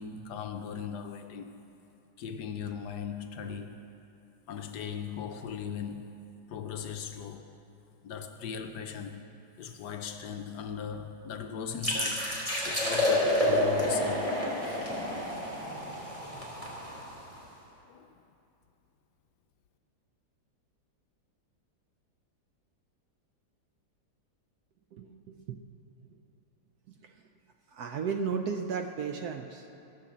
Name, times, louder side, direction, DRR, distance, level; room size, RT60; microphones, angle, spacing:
voice 1, 0.0-1.6 2.2-3.9 4.5-6.2 6.5-7.5 8.0-9.3 9.6-12.3 12.6-14.4 14.6-14.8 17.3-17.4 17.8-18.1, left 7 dB, 70° left, 1.1 m, -38 dB
sound 1, 11.8-17.4, left 1 dB, 15° right, 3.1 m, -29 dB
voice 2, 24.9-25.6 27.7-29.8, right 6 dB, 70° right, 1.0 m, -34 dB
15.5 x 6.7 x 7.2 m
omnidirectional pair, 2.1 m